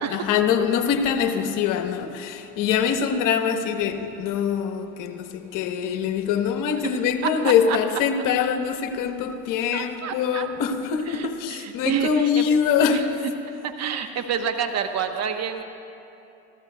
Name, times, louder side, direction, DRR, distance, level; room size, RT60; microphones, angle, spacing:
voice 1, 0.1-13.1, left 7 dB, 65° left, 6 dB, 1.1 m, -24 dB
voice 2, 9.7-10.5 11.1-12.4 12.9-13.0 13.6-15.6, right 7 dB, 45° right, 6 dB, 1.1 m, -28 dB
26.5 x 15.0 x 2.3 m, 2.7 s
supercardioid pair, 90°, 35 cm